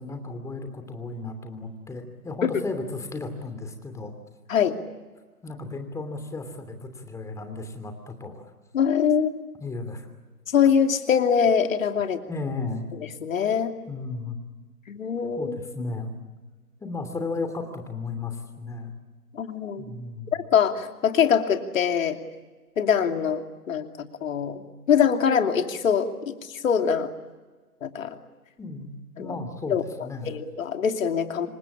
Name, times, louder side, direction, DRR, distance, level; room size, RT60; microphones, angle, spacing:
voice 1, 0.0-4.1 5.4-8.5 9.6-10.1 12.2-12.9 13.9-14.4 15.4-16.1 16.8-18.9 19.8-20.4 28.6-28.9 29.2-30.4, left 3 dB, 5° left, 6 dB, 2.8 m, -34 dB
voice 2, 8.7-9.4 10.5-12.2 13.2-13.7 14.9-15.6 19.3-19.8 20.3-22.2 22.8-24.6 24.9-27.1 27.8-28.2 29.2-29.3 29.7-29.8 30.2-31.5, left 7 dB, 60° left, 6 dB, 2.8 m, -23 dB
27.5 x 24.5 x 8.7 m, 1.3 s
figure-of-eight pair, 135°, 45 cm